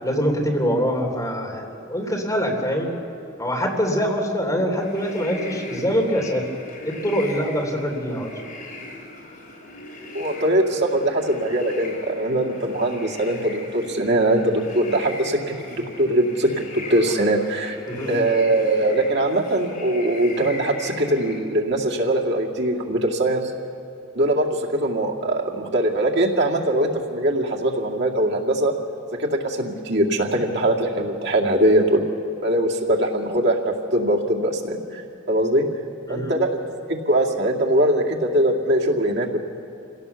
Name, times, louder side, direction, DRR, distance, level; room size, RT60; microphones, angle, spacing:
voice 1, 0.0-2.9 3.4-6.4 6.8-8.3 17.9-18.1 36.1-36.3, equal, 20° left, 1 dB, 3.3 m, -24 dB
sound 1, 4.8-21.4, left 2 dB, 50° left, 4.2 m, -38 dB
voice 2, 10.1-15.4 15.7-17.8 18.1-23.5 24.1-28.7 29.2-32.0 32.4-35.0 35.3-35.7 36.1-36.6 36.9-39.4, right 1 dB, 65° right, 0 dB, 2.3 m, -21 dB
25.5 x 17.5 x 7.0 m, 2.7 s
head